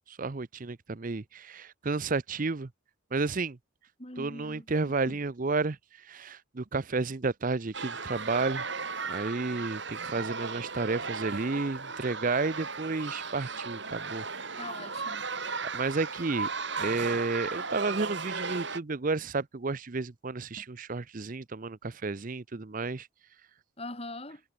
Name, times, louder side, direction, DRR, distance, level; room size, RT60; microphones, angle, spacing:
voice 1, 0.1-2.7 3.1-3.6 4.2-5.8 6.1-8.6 9.1-14.5 15.7-16.5 16.8-23.1, right 3 dB, 40° right, 0.6 m, -32 dB
voice 2, 4.0-4.7 5.1-5.2 14.6-15.2 23.8-24.4, left 2 dB, 30° left, 5.6 m, -42 dB
sound 1, 7.7-18.8, right 4 dB, 55° right, 5.4 m, -36 dB
head